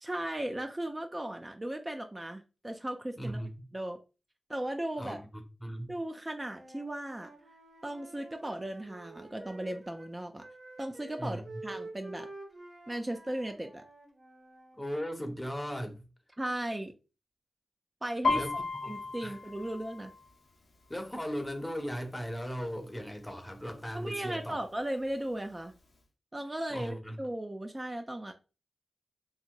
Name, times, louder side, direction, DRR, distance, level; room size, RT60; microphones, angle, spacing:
voice 1, 0.0-3.4 3.7-4.0 4.5-5.2 5.9-7.3 7.8-10.5 10.8-12.3 12.9-13.8 16.4-16.9 18.0-18.4 18.9-20.1 23.9-25.7 26.3-28.3, right 1 dB, 25° right, 0.4 m, -36 dB
voice 2, 3.2-3.7 4.9-5.9 11.2-11.6 14.8-16.1 18.3-19.4 20.9-24.6 26.7-27.2, equal, 20° left, 0.7 m, -38 dB
Wind instrument woodwind instrument, 6.4-10.1 10.4-14.8, right 2 dB, 60° right, 0.9 m, -49 dB
Piano, 18.2-21.9 22.2-22.6 23.0-23.6 24.2-24.3 24.5-25.6 25.9-26.0, left 4 dB, 85° left, 0.7 m, -35 dB
2.9 x 2.8 x 2.2 m
cardioid pair, 45°, 0 cm